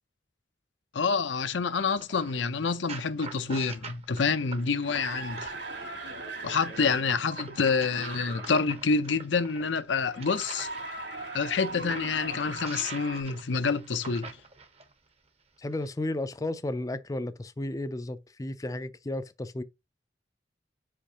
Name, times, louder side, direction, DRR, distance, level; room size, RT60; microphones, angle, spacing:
voice 1, 0.9-5.5 6.4-10.7 11.3-14.4, left 5 dB, 80° left, 0.6 m, -28 dB
sound 1, 1.7-5.8 6.7-10.9 11.5-14.9 15.7-15.9, right 4 dB, 35° right, 0.8 m, -45 dB
sound 2, 4.5-8.8 10.1-13.2, right 2 dB, 70° right, 2.5 m, -39 dB
voice 2, 15.6-19.6, left 1 dB, 20° left, 0.4 m, -33 dB
7.0 x 5.1 x 2.8 m
head